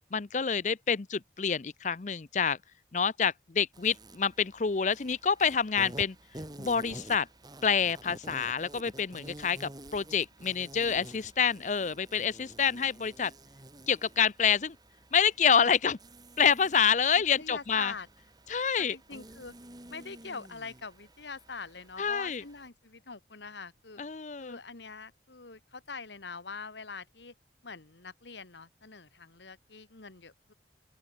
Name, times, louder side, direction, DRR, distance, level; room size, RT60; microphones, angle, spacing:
voice 1, 0.1-2.6 2.9-6.1 6.6-7.3 7.6-13.3 13.9-14.7 15.1-16.0 16.4-17.9 18.5-19.0 22.0-22.4 24.0-24.6, left 7 dB, 45° left, 0.6 m, -27 dB
Insect, 3.7-22.7, right 1 dB, 25° right, 2.6 m, -50 dB
voice 2, 17.1-18.1 18.8-19.5 19.9-24.0 24.4-27.3 27.6-30.5, left 4 dB, 90° left, 1.9 m, -44 dB
open air
head